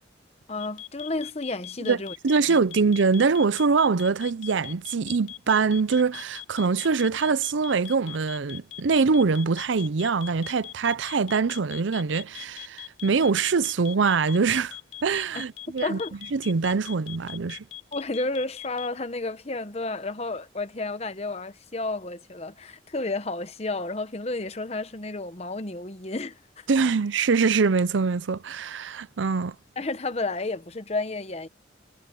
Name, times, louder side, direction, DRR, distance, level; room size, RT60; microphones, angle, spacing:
voice 1, 0.5-2.1 2.5-2.6 15.3-15.4 15.8-16.2 17.9-26.7 29.8-31.5, left 2 dB, 35° left, 1.0 m, -31 dB
sound 1, 0.6-18.9, left 12 dB, 85° left, 3.7 m, -40 dB
voice 2, 2.2-14.8 15.0-16.0 16.3-17.6 26.7-29.6, right 5 dB, 85° right, 0.6 m, -23 dB
head